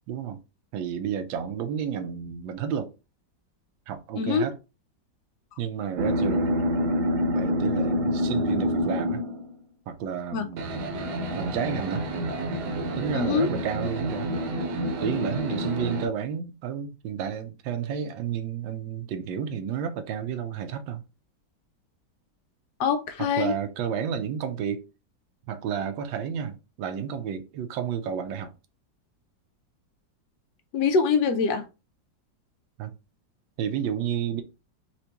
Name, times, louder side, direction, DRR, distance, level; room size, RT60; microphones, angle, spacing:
voice 1, 0.1-0.4 0.7-2.9 3.9-4.6 5.6-6.6 7.3-9.2 9.9-10.7 11.3-12.0 13.0-14.3 15.0-21.0 23.2-24.9 25.5-28.5 32.8-32.9 33.6-34.4, right 8 dB, 90° right, 1.4 m, -31 dB
voice 2, 4.2-4.5 10.3-10.5 13.1-13.5 22.8-23.6 30.7-31.6, left 5 dB, 75° left, 1.1 m, -24 dB
sound 1, 6.0-9.5 10.6-16.1, equal, 65° right, 1.2 m, -27 dB
4.4 x 2.5 x 2.9 m
omnidirectional pair, 2.0 m